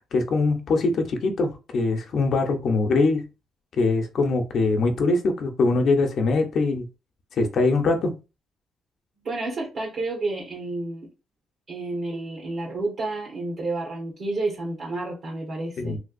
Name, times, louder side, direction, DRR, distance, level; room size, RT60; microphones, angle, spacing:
voice 1, 0.1-3.2 3.8-6.8 7.3-8.1 15.8-16.0, left 3 dB, 60° left, 0.8 m, -22 dB
voice 2, 9.2-11.1 11.7-16.0, right 2 dB, 60° right, 1.3 m, -30 dB
3.3 x 2.8 x 2.5 m
cardioid pair, 90°, 0 cm